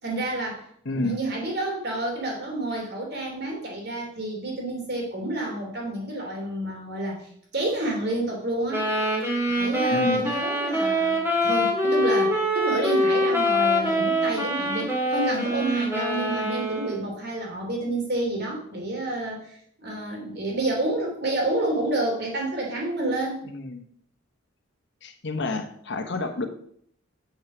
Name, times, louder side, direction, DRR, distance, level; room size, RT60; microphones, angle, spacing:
voice 1, 0.0-7.3 7.5-8.9 9.4-23.5, right 1 dB, 55° right, -1 dB, 3.0 m, -29 dB
voice 2, 0.8-1.2 9.9-10.2 23.5-23.8 25.0-26.5, left 2 dB, 60° left, 6 dB, 1.0 m, -29 dB
sound 1, 8.7-17.1, equal, 15° right, 2.2 m, -24 dB
7.3 x 6.2 x 5.9 m, 0.64 s
head